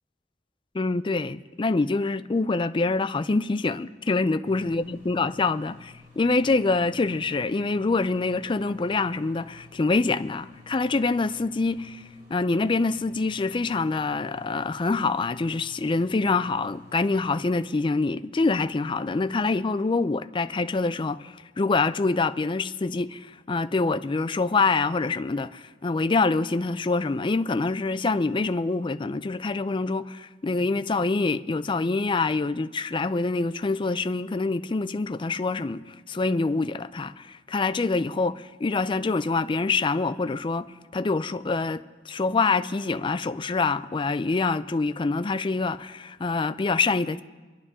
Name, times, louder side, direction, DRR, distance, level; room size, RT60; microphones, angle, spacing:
voice 1, 0.7-12.0 12.3-40.7 40.9-47.2, left 3 dB, 30° left, 0.4 m, -25 dB
sound 1, 4.4-17.4, left 3 dB, 55° right, 6.5 m, -52 dB
25.0 x 11.5 x 3.7 m
head